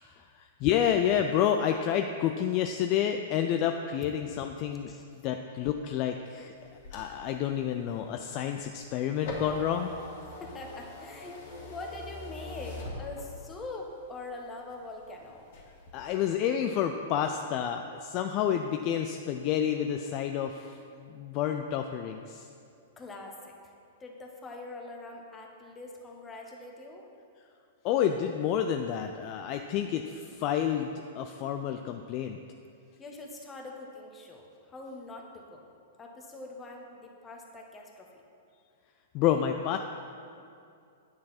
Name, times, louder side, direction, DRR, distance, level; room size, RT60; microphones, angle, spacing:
voice 1, 0.0-4.9 5.2-6.5 6.9-9.9 15.9-22.5 27.8-32.4 39.1-39.8, left 9 dB, 40° left, 5 dB, 0.4 m, -29 dB
sound 1, 6.6-13.6 14.1-15.1 15.4-15.9, left 2 dB, 60° left, 2.0 m, -43 dB
voice 2, 10.4-15.5 23.0-23.7 24.0-27.1 33.0-35.6 36.0-38.2, left 2 dB, 20° left, 1 dB, 1.3 m, -43 dB
9.4 x 6.2 x 4.3 m, 2.4 s
hypercardioid pair, 105°, 0 cm